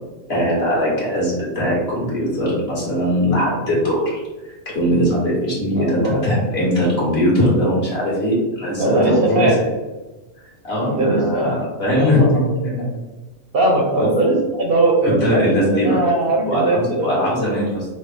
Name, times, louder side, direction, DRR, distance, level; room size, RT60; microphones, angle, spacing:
voice 1, 0.3-9.6 10.6-12.8 13.9-14.1 15.0-16.0 16.5-17.9, equal, 50° left, -6 dB, 1.9 m, -20 dB
voice 2, 5.7-6.2 8.8-9.5 10.9-11.6 11.9-12.5 13.5-15.5 15.8-17.1, right 2 dB, 50° right, -2 dB, 0.9 m, -19 dB
5.3 x 2.4 x 3.4 m, 1.2 s
omnidirectional pair, 1.4 m